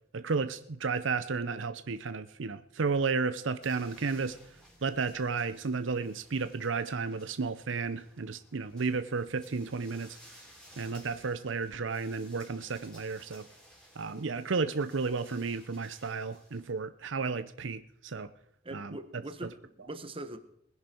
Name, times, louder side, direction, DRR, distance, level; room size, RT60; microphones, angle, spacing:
voice 1, 0.1-10.2 10.8-13.5 14.0-18.3 18.7-19.0, right 4 dB, 75° right, 12 dB, 0.7 m, -33 dB
sound 1, 3.6-16.7, equal, 5° left, 3.9 m, -58 dB
voice 2, 18.6-20.4, right 1 dB, 30° right, 10 dB, 1.2 m, -42 dB
20.5 x 10.5 x 4.5 m, 0.72 s
head